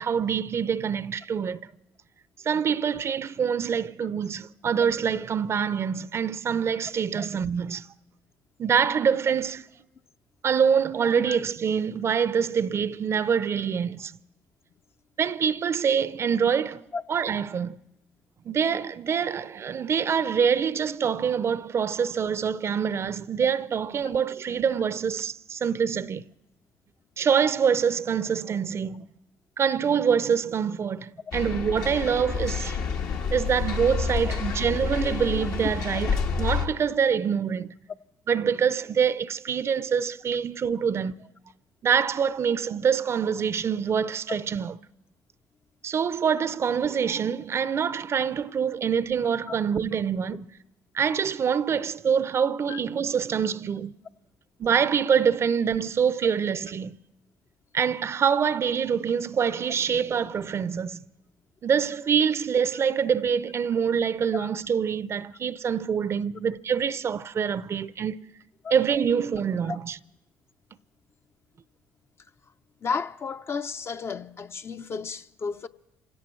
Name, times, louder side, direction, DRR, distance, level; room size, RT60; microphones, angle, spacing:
voice 1, 0.0-1.6 2.4-7.9 8.6-9.6 10.4-14.1 15.2-16.8 17.1-17.8 18.4-26.2 27.2-29.1 29.6-32.8 33.3-37.7 38.3-41.1 41.8-44.8 45.8-50.5 50.9-53.9 54.6-57.0 57.7-61.1 61.6-68.2 68.7-70.0, right 7 dB, 45° right, 0.5 m, -25 dB
sound 1, 31.3-36.7, left 6 dB, 70° left, 1.5 m, -29 dB
voice 2, 34.2-34.5 35.1-35.2 40.6-40.7 44.3-44.4 49.5-49.6 52.7-52.8 64.3-64.5 68.6-68.7 69.7-69.8 72.8-75.7, left 5 dB, 40° left, 0.6 m, -33 dB
27.5 x 17.0 x 3.1 m
supercardioid pair, 65°, 6 cm